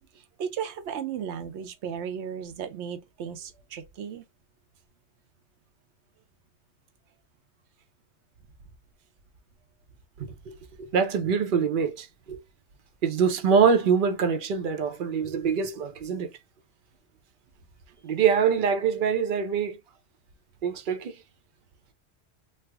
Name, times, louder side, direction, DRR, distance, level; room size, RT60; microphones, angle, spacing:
voice 1, 0.1-4.2 17.9-18.0, right 8 dB, 85° right, 0.9 m, -35 dB
voice 2, 10.2-12.4 13.0-16.3 18.0-19.8 20.6-21.1, right 6 dB, 55° right, 0.7 m, -24 dB
3.3 x 2.0 x 3.3 m
omnidirectional pair, 1.1 m